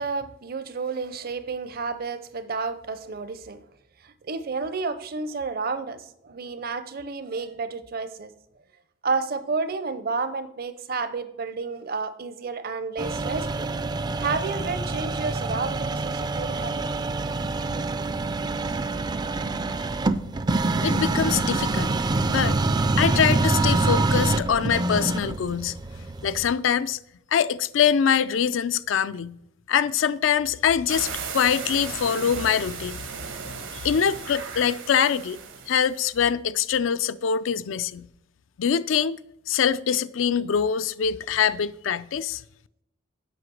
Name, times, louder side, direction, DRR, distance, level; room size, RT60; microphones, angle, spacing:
voice 1, 0.0-3.6 4.0-8.3 9.0-13.7 14.2-16.9 17.6-17.8, right 4 dB, 50° right, 0.6 m, -31 dB
sound 1, 13.0-26.5, right 2 dB, 20° right, 0.3 m, -26 dB
voice 2, 20.8-21.9 22.3-22.6 23.0-25.8 26.2-27.0 27.3-29.4 29.7-33.1 33.7-35.4 35.7-38.1 38.6-39.2 39.5-42.4, left 7 dB, 80° left, 0.4 m, -24 dB
sound 2, 30.9-36.1, right 6 dB, 80° right, 1.4 m, -36 dB
7.9 x 5.8 x 6.2 m
head